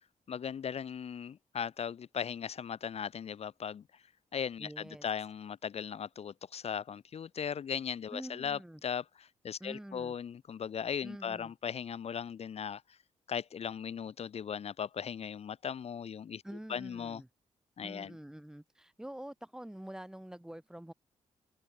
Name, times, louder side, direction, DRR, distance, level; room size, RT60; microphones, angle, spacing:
voice 1, 0.3-4.0 4.3-13.0 13.3-16.4 16.7-17.2 17.8-18.1, left 7 dB, 55° left, 0.7 m, -38 dB
voice 2, 4.6-5.0 8.1-8.8 9.6-10.1 11.0-11.5 16.4-17.3 17.8-20.9, right 1 dB, 5° right, 0.7 m, -46 dB
open air
cardioid pair, 75°, 13 cm